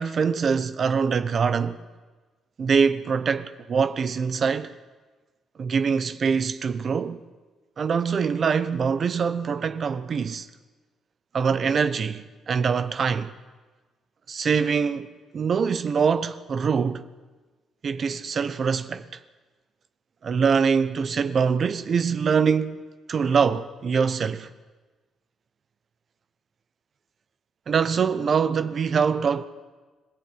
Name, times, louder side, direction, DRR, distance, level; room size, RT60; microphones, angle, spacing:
voice 1, 0.0-1.8 2.6-4.7 5.6-7.2 7.8-10.5 11.3-13.3 14.3-15.1 15.3-17.1 17.8-19.2 20.2-22.8 23.1-24.5 27.7-29.4, right 6 dB, 50° right, 1.1 m, -24 dB
26.0 x 17.0 x 8.8 m
cardioid pair, 90°, 0 cm